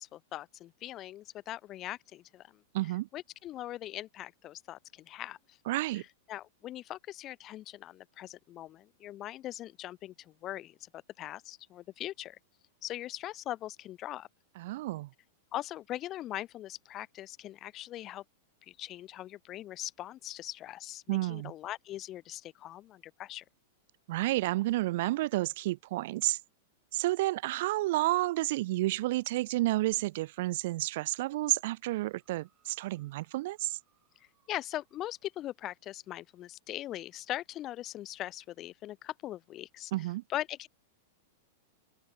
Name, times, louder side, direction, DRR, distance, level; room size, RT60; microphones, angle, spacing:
voice 1, 0.0-2.6 3.1-5.6 5.9-10.9 11.2-12.4 12.8-14.3 15.5-18.2 18.7-23.4 34.5-39.9 40.3-40.7, left 14 dB, 35° left, 0.5 m, -41 dB
voice 2, 2.7-3.1 5.7-6.0 14.6-15.1 21.1-21.5 24.1-26.4 26.9-33.8 39.9-40.2, right 18 dB, 55° right, 0.4 m, -30 dB
sound 1, 31.9-35.6 36.4-36.5, right 12 dB, 30° right, 5.7 m, -75 dB
open air
figure-of-eight pair, 100°, 0 cm